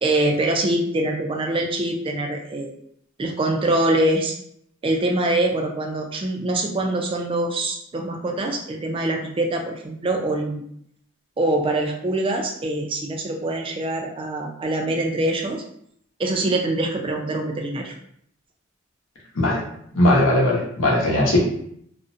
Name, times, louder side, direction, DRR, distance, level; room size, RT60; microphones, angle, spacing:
voice 1, 0.0-2.7 3.2-4.4 4.8-10.6 11.4-15.6 16.2-17.9, right 1 dB, 25° right, 2 dB, 0.3 m, -24 dB
voice 2, 19.9-21.4, left 1 dB, 75° left, -3 dB, 0.8 m, -18 dB
2.4 x 2.0 x 2.5 m, 0.69 s
head